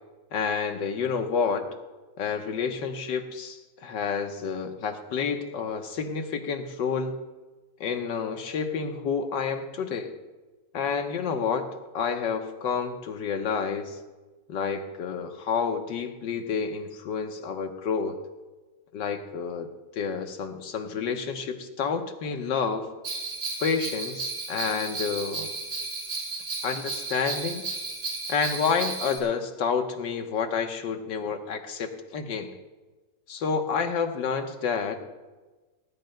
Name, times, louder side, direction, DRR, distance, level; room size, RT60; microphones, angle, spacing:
voice 1, 0.3-1.7 2.2-7.2 7.8-10.1 10.7-11.7 11.9-14.0 14.5-18.2 18.9-19.7 19.9-22.9 23.6-25.5 26.6-27.6 28.3-32.5 33.3-35.0, left 6 dB, 85° left, 5 dB, 1.8 m, -29 dB
Bell, 23.0-29.2, right 3 dB, 65° right, 3.2 m, -34 dB
19.5 x 18.5 x 2.2 m, 1.2 s
omnidirectional pair, 1.9 m